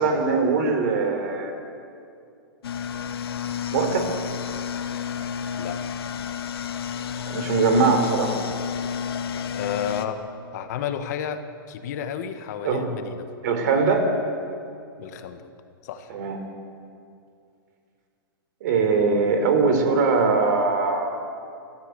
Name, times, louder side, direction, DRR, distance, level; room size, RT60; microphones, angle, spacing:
voice 1, 0.0-1.5 3.7-4.1 7.2-8.4 12.6-12.9 13.4-14.1 16.1-16.4 18.6-21.1, right 4 dB, 50° right, 5 dB, 3.8 m, -21 dB
sound 1, 2.6-10.1, left 7 dB, 90° left, 1.7 m, -31 dB
voice 2, 5.6-5.9 9.5-10.2 10.5-13.2 15.0-15.4 15.8-16.1, left 8 dB, 45° left, 8 dB, 1.4 m, -31 dB
29.5 x 14.0 x 8.1 m, 2.5 s
hypercardioid pair, 165°, 12 cm